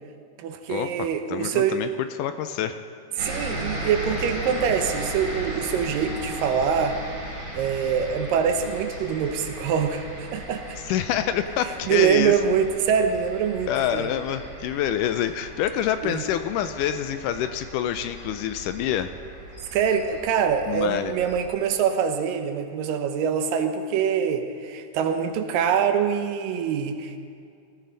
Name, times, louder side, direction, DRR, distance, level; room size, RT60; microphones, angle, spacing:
voice 1, 0.4-1.8 3.2-7.0 7.5-10.8 11.9-14.1 16.0-16.2 19.7-27.2, right 7 dB, 75° right, 7 dB, 2.5 m, -24 dB
voice 2, 1.3-2.8 10.9-12.4 13.7-19.1 20.7-21.1, left 10 dB, 85° left, 10 dB, 1.9 m, -27 dB
sound 1, 3.2-21.5, right 1 dB, 25° right, 4.1 m, -37 dB
19.0 x 13.5 x 4.0 m, 2.3 s
omnidirectional pair, 4.1 m